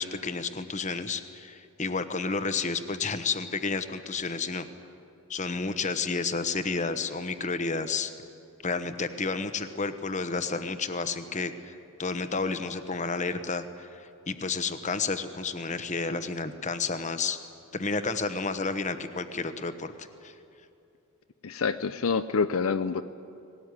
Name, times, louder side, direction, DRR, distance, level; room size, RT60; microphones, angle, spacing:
voice 1, 0.0-4.7 5.3-8.1 8.6-14.0 14.3-17.4 17.7-19.9 20.2-20.3, left 4 dB, 35° left, 10 dB, 1.0 m, -31 dB
voice 2, 21.4-23.0, left 5 dB, 70° left, 11 dB, 0.6 m, -27 dB
19.5 x 18.5 x 9.6 m, 2.7 s
head